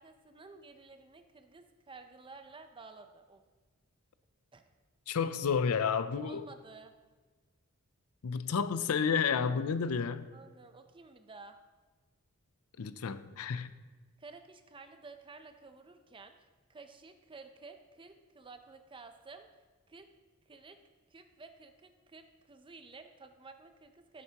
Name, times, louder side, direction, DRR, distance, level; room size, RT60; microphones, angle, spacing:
voice 1, 0.0-3.4 4.5-4.7 6.2-6.9 10.3-11.6 14.2-16.3 16.7-19.5 19.9-20.1 20.5-20.8 21.1-24.2, right 4 dB, 25° right, 7 dB, 0.6 m, -52 dB
voice 2, 5.1-6.5 8.2-10.3 12.8-13.7, left 6 dB, 75° left, 13 dB, 0.5 m, -31 dB
13.5 x 8.3 x 2.9 m, 1.3 s
head